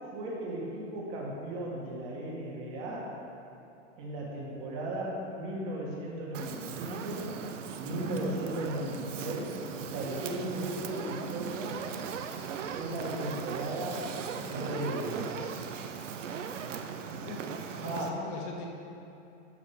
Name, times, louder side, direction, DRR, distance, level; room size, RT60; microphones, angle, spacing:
voice 1, 0.1-3.1 4.0-7.3 7.8-11.8 12.7-14.0 14.5-15.4 17.8-18.2, right 1 dB, 35° right, -4 dB, 2.0 m, -36 dB
Fire, 6.3-18.1, right 6 dB, 85° right, 0.8 m, -38 dB
voice 2, 8.0-8.4 17.2-18.7, left 4 dB, 40° left, -1 dB, 1.4 m, -42 dB
12.0 x 4.9 x 5.0 m, 2.9 s
hypercardioid pair, 145°, 36 cm